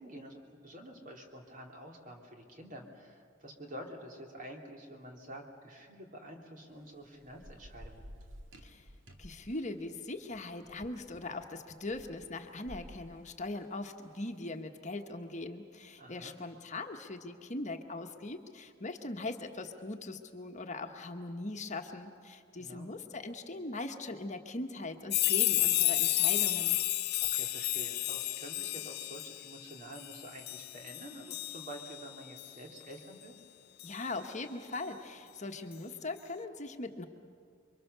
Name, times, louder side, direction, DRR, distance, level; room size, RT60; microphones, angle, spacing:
voice 1, 0.0-8.1 16.0-16.4 22.6-22.9 27.1-33.3, right 1 dB, 45° right, 2 dB, 3.0 m, -48 dB
Thunder / Rain, 6.7-14.3, equal, 80° right, 2.2 m, -53 dB
voice 2, 9.2-26.8 33.8-37.0, left 2 dB, 40° left, 5 dB, 1.3 m, -40 dB
sound 1, 25.1-32.0 32.4-32.5 33.8-33.9, left 16 dB, 55° left, 0.6 m, -31 dB
29.0 x 23.5 x 6.9 m, 2.2 s
head